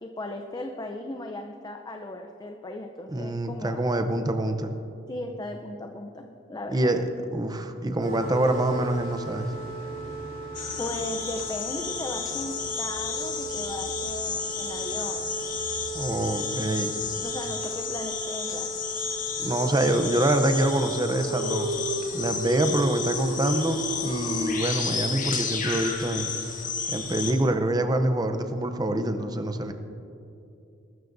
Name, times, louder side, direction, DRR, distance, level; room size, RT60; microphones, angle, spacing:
voice 1, 0.0-3.8 5.1-7.0 10.8-15.3 17.2-18.7, left 1 dB, 20° left, 4 dB, 0.6 m, -37 dB
voice 2, 3.1-4.7 6.7-7.0 7.3-9.5 15.9-16.9 19.4-21.7 22.1-26.3 26.9-29.7, right 1 dB, 20° right, 7 dB, 0.6 m, -25 dB
sound 1, 8.0-25.8, right 2 dB, 90° right, 3.7 m, -36 dB
sound 2, 10.5-27.3, left 6 dB, 40° left, 1.5 m, -32 dB
21.5 x 12.5 x 2.6 m, 2.7 s
head